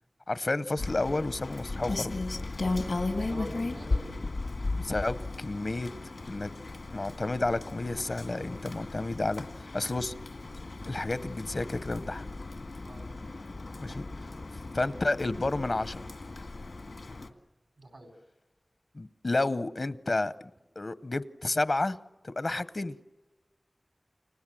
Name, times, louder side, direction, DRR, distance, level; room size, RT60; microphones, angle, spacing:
voice 1, 0.3-2.2 4.7-5.9 6.3-6.5 6.9-9.5 9.7-10.1 10.9-12.2 13.8-14.0 14.7-16.0 18.9-20.3 20.8-22.0 22.2-22.9, left 2 dB, 65° left, 0.8 m, -31 dB
Rain, 0.8-17.3, left 2 dB, 90° left, 2.0 m, -36 dB
voice 2, 3.2-4.2 12.8-13.1 13.9-14.1 17.8-18.1, right 1 dB, 90° right, 4.4 m, -45 dB
30.0 x 26.0 x 7.6 m
wide cardioid pair, 60°, 0 cm